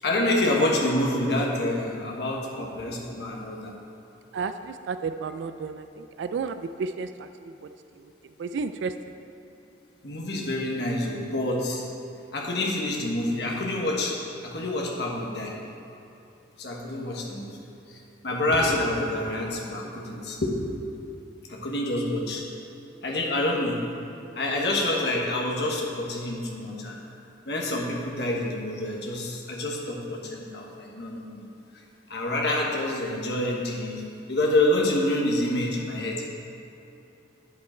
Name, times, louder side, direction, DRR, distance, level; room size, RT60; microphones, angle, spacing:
voice 1, 0.0-3.7 10.0-11.8 12.3-14.1 14.4-15.5 16.6-17.6 17.9-20.5 21.5-22.4 23.0-23.8 24.3-27.0 27.4-31.4 32.1-34.0 34.3-36.3, left 1 dB, 65° left, -1 dB, 1.3 m, -27 dB
voice 2, 4.3-7.7 8.0-8.9, right 5 dB, 80° right, 10 dB, 0.3 m, -33 dB
8.4 x 7.4 x 4.4 m, 2.8 s
head